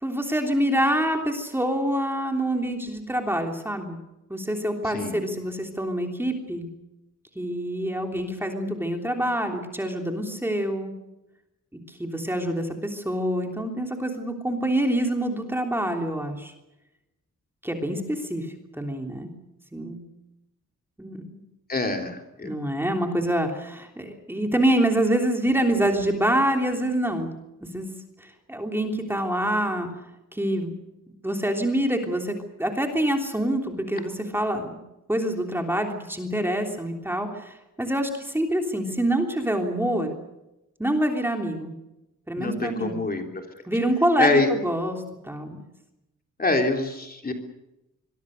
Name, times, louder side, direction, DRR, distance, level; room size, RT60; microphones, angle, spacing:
voice 1, 0.0-4.0 4.3-6.7 7.3-10.9 11.9-16.5 17.6-19.3 19.7-20.0 21.0-21.4 22.4-27.3 27.7-27.9 28.2-29.9 30.3-30.8 31.2-34.8 35.1-40.1 40.8-41.7 42.3-43.0 43.7-45.6, right 1 dB, 5° right, 3 dB, 3.2 m, -26 dB
voice 2, 21.7-22.5 42.4-43.2 44.2-44.5 46.4-47.3, left 2 dB, 30° left, 3 dB, 3.4 m, -25 dB
26.0 x 22.5 x 6.6 m, 0.92 s
wide cardioid pair, 170°, 31 cm